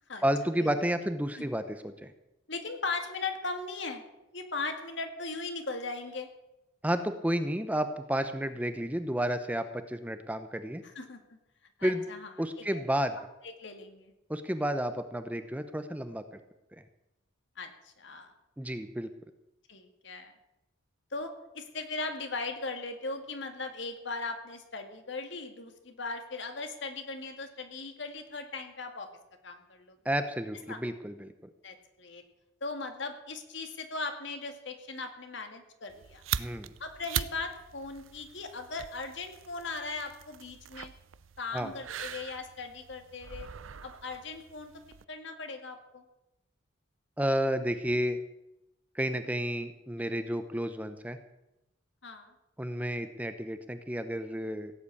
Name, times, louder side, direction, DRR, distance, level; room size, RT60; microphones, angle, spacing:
voice 1, 0.2-2.1 6.8-10.8 11.8-12.0 12.4-13.2 14.3-16.2 18.6-19.1 30.0-31.3 36.4-36.7 41.5-41.7 47.2-48.2 48.9-51.2 52.6-54.7, equal, 10° right, 9 dB, 0.7 m, -31 dB
voice 2, 2.5-4.0 4.3-6.3 10.8-11.4 11.8-12.3 12.7-12.8 13.4-14.1 17.6-18.3 19.7-20.3 21.1-29.1 29.4-30.0 30.7-30.8 31.6-32.2 32.6-36.2 36.8-40.9 41.4-43.5 43.8-44.7 45.1-46.0 50.0-50.3 52.0-52.3, left 3 dB, 65° left, 6 dB, 2.1 m, -38 dB
sound 1, 35.9-45.1, right 9 dB, 85° right, 0.6 m, -41 dB
17.0 x 8.1 x 8.5 m, 0.92 s
head